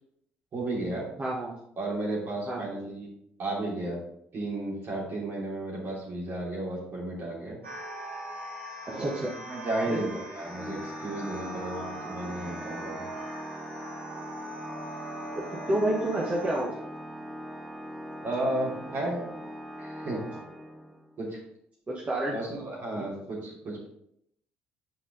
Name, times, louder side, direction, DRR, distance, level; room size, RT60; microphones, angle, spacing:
voice 1, 0.5-1.0 1.8-3.1 3.4-4.0 4.3-7.6 8.9-13.1 18.2-19.3 19.8-20.2 21.2-21.4 22.3-23.9, right 2 dB, 45° right, -4 dB, 3.0 m, -33 dB
voice 2, 1.2-1.5 2.5-2.7 8.8-9.3 9.9-10.0 15.3-16.8 21.9-22.3 22.9-23.0, right 1 dB, 25° right, -4 dB, 1.4 m, -29 dB
sound 1, 7.6-16.6, right 1 dB, 85° right, 1.1 m, -41 dB
Organ, 10.3-21.1, equal, ahead, 1.0 m, -41 dB
8.1 x 5.0 x 3.8 m, 0.73 s
figure-of-eight pair, 50°, 6 cm